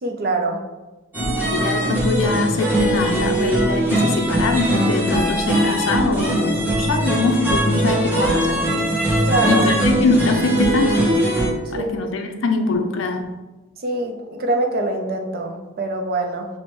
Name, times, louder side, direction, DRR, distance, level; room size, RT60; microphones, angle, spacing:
voice 1, 0.0-0.6 9.2-9.6 11.8-11.9 13.8-16.5, right 2 dB, 45° right, 3 dB, 0.5 m, -24 dB
sound 1, 1.1-11.5, right 1 dB, 10° right, 0.8 m, -20 dB
voice 2, 1.2-8.7 9.5-11.2 11.7-13.3, left 3 dB, 65° left, 5 dB, 0.4 m, -23 dB
5.8 x 2.0 x 3.0 m, 1.1 s
head